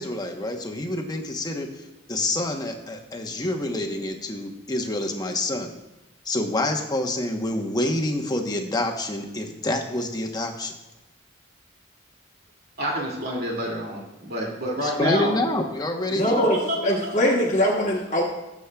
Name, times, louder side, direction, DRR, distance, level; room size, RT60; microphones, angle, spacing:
voice 1, 0.0-1.7 2.1-5.7 6.2-10.7 14.8-16.5, left 1 dB, 20° left, 2 dB, 1.0 m, -27 dB
voice 2, 12.8-15.3 16.2-17.3, equal, 55° right, -2 dB, 2.5 m, -28 dB
voice 3, 16.1-18.2, equal, 40° left, -2 dB, 1.2 m, -22 dB
18.0 x 7.2 x 2.3 m, 1.0 s
head